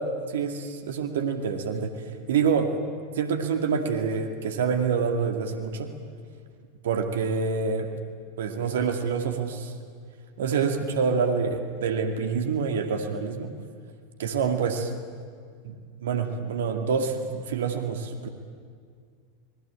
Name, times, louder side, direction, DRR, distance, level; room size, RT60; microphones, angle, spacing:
voice 1, 0.0-2.0 2.3-2.7 3.1-5.9 6.8-7.9 8.4-9.7 10.4-13.5 14.2-14.9 15.6-18.3, right 5 dB, 75° right, 6 dB, 2.3 m, -27 dB
28.5 x 20.5 x 9.0 m, 2.1 s
hypercardioid pair, 95°, 0 cm